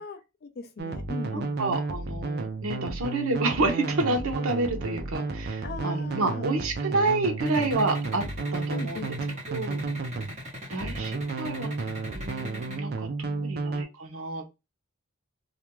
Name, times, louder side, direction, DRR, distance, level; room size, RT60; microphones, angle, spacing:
voice 1, 0.0-1.6 5.6-6.5 8.7-9.2 13.2-13.7, left 4 dB, 45° left, 0.4 m, -39 dB
sound 1, 0.8-10.3 10.8-13.9, right 3 dB, 45° right, 0.4 m, -32 dB
voice 2, 1.3-8.2 8.5-9.0 9.5-9.8 10.7-11.7 12.1-13.1 13.4-14.6, right 2 dB, 85° right, 0.6 m, -29 dB
sound 2, 7.5-12.8, equal, 30° right, 0.9 m, -39 dB
2.4 x 2.2 x 3.0 m
head